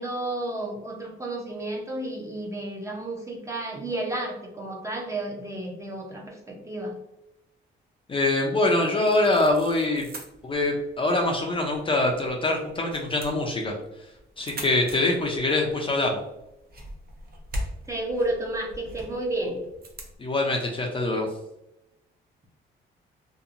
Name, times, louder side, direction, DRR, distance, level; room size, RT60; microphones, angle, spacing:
voice 1, 0.0-6.9 17.9-19.6, right 1 dB, 15° right, 0 dB, 0.6 m, -31 dB
voice 2, 8.1-10.0 10.4-13.7 14.4-16.2 20.2-21.3, left 2 dB, 25° left, 0 dB, 0.5 m, -24 dB
sound 1, 9.0-20.2, equal, 50° right, 0.7 m, -42 dB
2.8 x 2.2 x 2.5 m, 0.87 s
cardioid pair, 90°, 20 cm